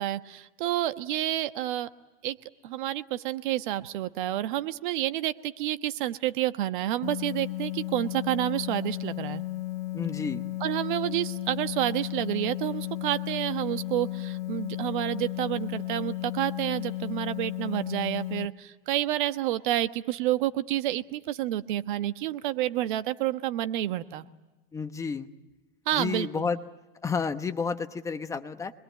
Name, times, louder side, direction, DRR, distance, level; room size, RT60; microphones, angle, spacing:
voice 1, 0.0-1.9 2.2-2.4 2.6-9.4 10.6-24.2 25.9-26.5, right 13 dB, 55° right, 12 dB, 1.2 m, -29 dB
sound 1, 7.0-18.5, left 17 dB, 90° left, 1.0 m, -34 dB
voice 2, 9.9-10.5 24.7-25.3 25.9-26.6 27.0-28.7, left 5 dB, 10° left, 8 dB, 1.0 m, -31 dB
27.0 x 21.5 x 9.5 m, 1.1 s
supercardioid pair, 145°, 29 cm